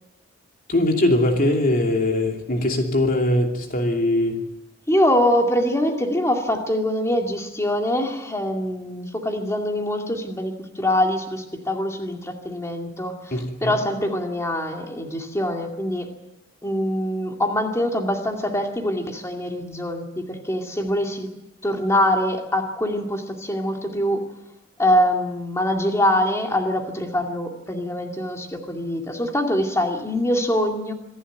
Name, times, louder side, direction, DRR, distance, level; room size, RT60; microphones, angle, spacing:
voice 1, 0.7-4.4 13.3-13.7, left 1 dB, 45° left, 3 dB, 2.8 m, -21 dB
voice 2, 4.9-16.1 16.6-21.3 21.6-24.2 24.8-30.9, left 1 dB, 15° left, 3 dB, 2.3 m, -24 dB
26.0 x 11.0 x 9.2 m, 0.97 s
head